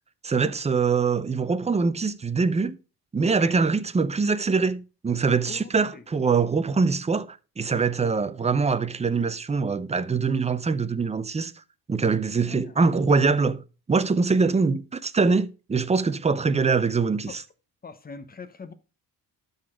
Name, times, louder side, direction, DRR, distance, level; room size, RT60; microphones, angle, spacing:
voice 1, 0.2-2.8 3.1-11.5 11.9-13.6 13.9-17.4, right 4 dB, 15° right, 0.5 m, -23 dB
voice 2, 5.5-6.0 8.0-8.1 12.5-12.8 17.3-17.4 17.8-18.7, left 4 dB, 25° left, 0.9 m, -42 dB
12.0 x 4.1 x 4.9 m
cardioid pair, 145°, 39 cm